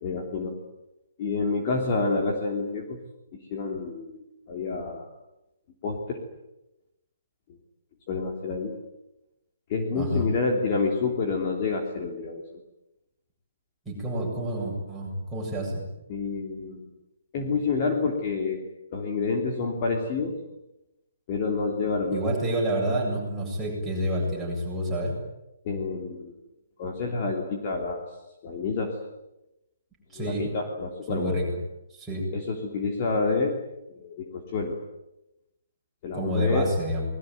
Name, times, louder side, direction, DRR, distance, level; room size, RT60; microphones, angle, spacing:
voice 1, 0.0-0.6 1.2-3.0 3.3-5.1 5.8-6.2 8.1-8.8 9.7-12.4 16.1-16.9 17.3-18.6 18.9-20.4 21.3-22.2 25.6-26.3 26.8-28.0 28.4-29.0 30.1-31.4 32.3-33.6 33.9-34.8 36.0-36.7, left 4 dB, 25° left, 1 dB, 3.2 m, -28 dB
voice 2, 10.0-10.3 13.8-15.8 22.1-25.1 30.1-30.5 31.1-31.4 31.9-32.2 36.1-37.0, equal, 5° right, -5 dB, 7.8 m, -28 dB
26.5 x 21.5 x 9.4 m, 0.92 s
hypercardioid pair, 180°, 0 cm